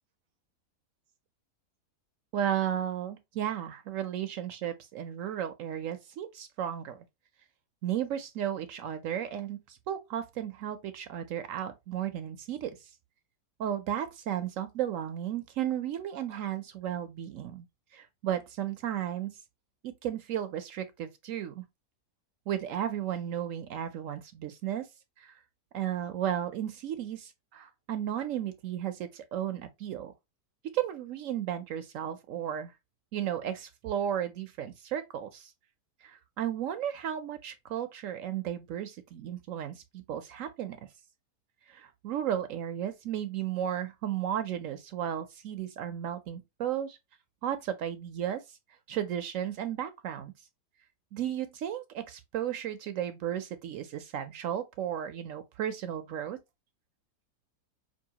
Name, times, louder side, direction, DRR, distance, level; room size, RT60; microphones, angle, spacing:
voice 1, 2.3-7.0 7.8-12.9 13.6-17.7 17.9-19.3 19.8-21.6 22.5-24.9 25.2-25.4 25.7-30.1 30.7-32.7 33.1-35.5 36.0-40.8 41.7-47.0 47.4-48.4 48.9-50.3 51.1-56.4, right 10 dB, 70° right, 0.8 m, -34 dB
5.4 x 2.6 x 2.8 m
omnidirectional pair, 1.7 m